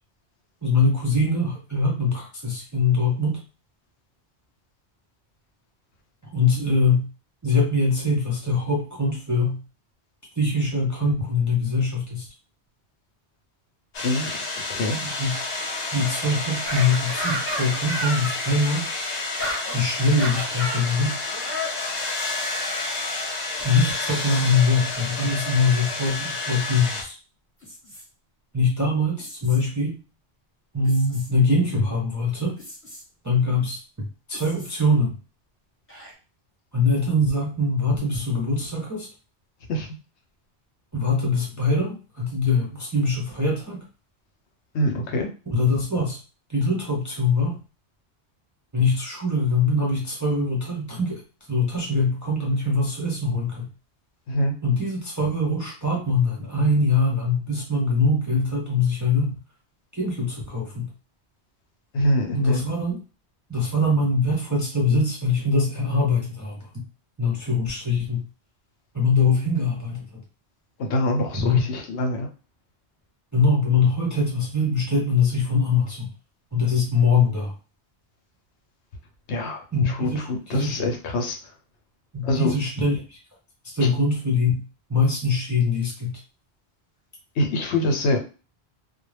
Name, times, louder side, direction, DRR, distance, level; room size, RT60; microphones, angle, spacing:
voice 1, 0.6-3.4 6.3-7.1 7.4-9.6 10.4-12.3 15.0-15.4 15.9-18.9 19.7-21.2 23.6-27.1 28.5-29.9 30.7-32.6 33.2-33.8 34.3-35.1 36.7-39.1 40.9-43.8 45.5-46.2 46.5-47.6 48.7-51.2 51.5-53.7 54.6-59.3 60.0-60.9 62.3-63.0 63.5-66.8 67.2-68.2 68.9-70.1 71.4-71.6 73.3-76.1 76.5-77.5 79.7-80.2 80.5-80.8 82.1-83.0 83.7-84.6 84.9-86.2, left 3 dB, 25° right, -3 dB, 0.4 m, -23 dB
sound 1, 13.9-27.0, left 3 dB, 50° left, 0.6 m, -30 dB
voice 2, 14.7-15.0 39.7-39.9 44.7-45.3 54.3-54.5 61.9-62.6 70.8-72.3 79.3-81.4 82.2-82.5 83.8-83.9 87.4-88.2, left 1 dB, 80° left, 3 dB, 0.9 m, -24 dB
sound 2, 16.6-18.4 19.4-19.8 20.2-20.9 21.3-21.8 23.6-23.9 26.1-26.2 27.6-28.0 29.2-29.6 30.8-31.3 32.6-33.0 34.3-34.8 35.9-36.1, equal, 15° left, 0.9 m, -33 dB
2.3 x 2.0 x 3.1 m, 0.34 s
omnidirectional pair, 1.1 m